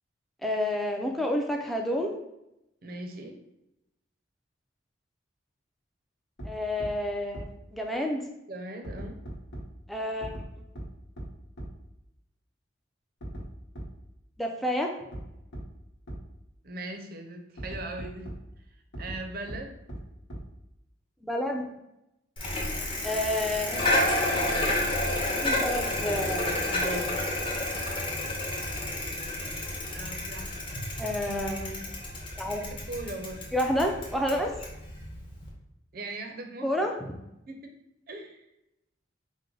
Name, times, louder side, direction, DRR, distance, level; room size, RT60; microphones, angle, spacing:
voice 1, 0.4-2.2 6.4-8.2 9.9-10.3 14.4-14.9 21.2-21.7 23.0-23.8 25.4-27.2 31.0-31.8 32.4-32.6 33.5-34.6 36.6-36.9, left 1 dB, ahead, 1 dB, 0.4 m, -29 dB
voice 2, 2.8-3.4 8.5-9.2 16.6-18.3 18.6-19.8 29.9-30.7 32.6-33.5 35.9-36.7 37.5-37.8 38.1-38.4, right 2 dB, 50° right, 4 dB, 0.5 m, -40 dB
sound 1, 6.4-6.5 6.8-6.9 7.3-7.4 8.8-9.6 10.2-10.4 10.8-10.9 11.2-11.3 11.6-11.7 13.2-13.4 13.8-13.9 15.1-15.2 15.5-15.6 16.1-16.2 17.6-18.4 18.9-19.2 19.5-19.6 19.9-20.0 20.3-20.4, equal, 80° left, 1.1 m, -38 dB
Bicycle, 22.4-35.5, left 1 dB, 25° left, 0.8 m, -30 dB
4.6 x 2.1 x 3.7 m, 0.87 s
head